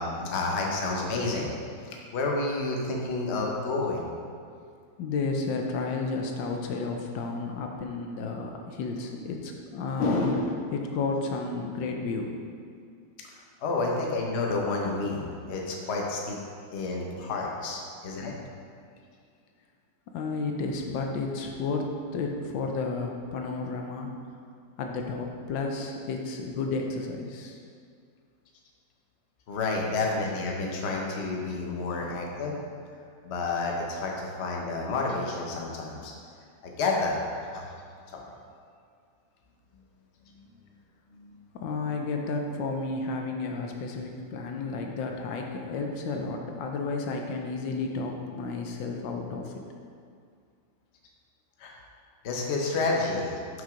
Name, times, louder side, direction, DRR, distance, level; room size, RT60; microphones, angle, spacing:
voice 1, 0.0-1.5 1.8-4.1 13.2-13.3 13.6-16.4 16.7-18.3 29.5-32.6 33.2-36.1 36.6-37.2 37.5-37.7 38.1-38.2 40.3-40.4 41.1-41.4 51.6-51.7 52.2-53.3, left 3 dB, 45° left, -1 dB, 1.0 m, -30 dB
voice 2, 5.0-12.3 20.1-24.1 24.8-27.6 32.0-32.2 41.5-49.5, left 3 dB, 75° left, 2 dB, 1.3 m, -31 dB
6.2 x 5.7 x 5.0 m, 2.2 s
omnidirectional pair, 2.0 m